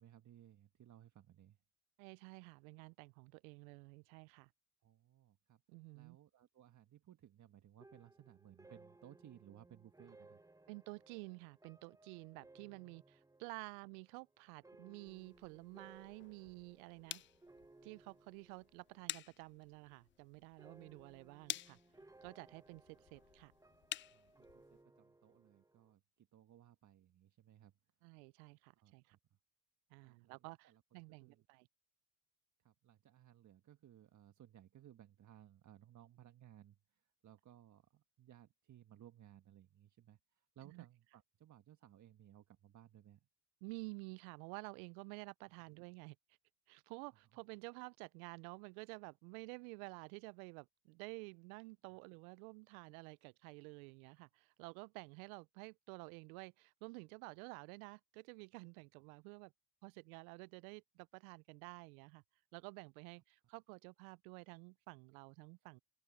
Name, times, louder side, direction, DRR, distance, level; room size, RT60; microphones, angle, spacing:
voice 1, 0.0-1.6 4.8-5.6 5.9-10.4 17.2-17.3 22.0-22.1 23.0-23.1 24.1-27.7 28.8-29.2 30.0-30.8 31.1-31.5 32.6-43.3 47.1-47.2, right 11 dB, 40° right, 1.6 m, -62 dB
voice 2, 2.0-4.5 5.7-6.2 10.7-17.2 17.8-21.8 22.2-23.5 28.0-29.2 29.9-31.7 40.6-40.8 43.6-46.2 46.7-59.5 59.8-62.2 62.5-65.8, right 31 dB, 70° right, 0.7 m, -52 dB
sound 1, 7.8-19.3 19.5-20.1 20.6-25.9, right 2 dB, 5° right, 1.1 m, -64 dB
sound 2, 15.1-24.8, left 13 dB, 30° left, 0.4 m, -51 dB
open air
hypercardioid pair, 75°, 45 cm